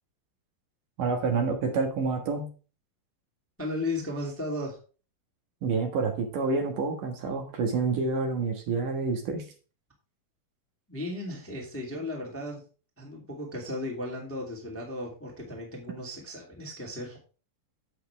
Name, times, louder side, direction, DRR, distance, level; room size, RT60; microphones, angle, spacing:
voice 1, 1.0-2.5 5.6-9.5, right 4 dB, 65° right, 4 dB, 3.0 m, -28 dB
voice 2, 3.6-4.8 10.9-12.6 13.0-17.2, left 1 dB, 5° left, -1 dB, 1.9 m, -35 dB
8.6 x 7.8 x 3.5 m, 0.35 s
omnidirectional pair, 4.2 m